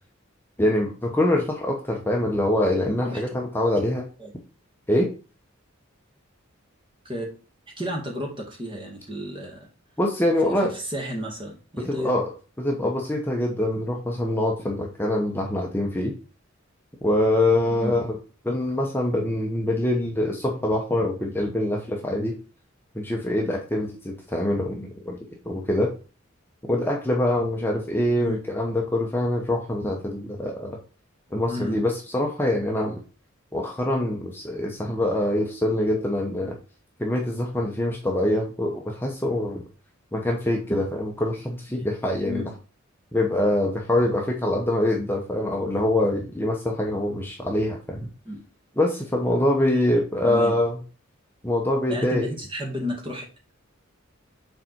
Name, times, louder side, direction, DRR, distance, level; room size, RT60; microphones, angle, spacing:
voice 1, 0.6-4.0 4.9-5.1 10.0-10.7 11.8-12.3 12.6-16.1 17.0-18.1 18.4-22.4 22.9-25.9 26.7-30.8 31.3-33.0 33.5-36.6 37.0-39.6 40.1-42.4 43.1-48.1 48.8-50.8 51.4-52.3, left 1 dB, 10° left, 0 dB, 0.9 m, -24 dB
voice 2, 7.8-9.7 10.4-12.1 12.8-12.9 17.7-18.0 28.1-28.4 31.5-31.8 41.7-41.8 42.2-42.5 48.3-48.4 50.3-50.6 51.9-53.3, equal, 25° right, 0 dB, 2.1 m, -32 dB
6.7 x 4.2 x 4.5 m, 0.35 s
head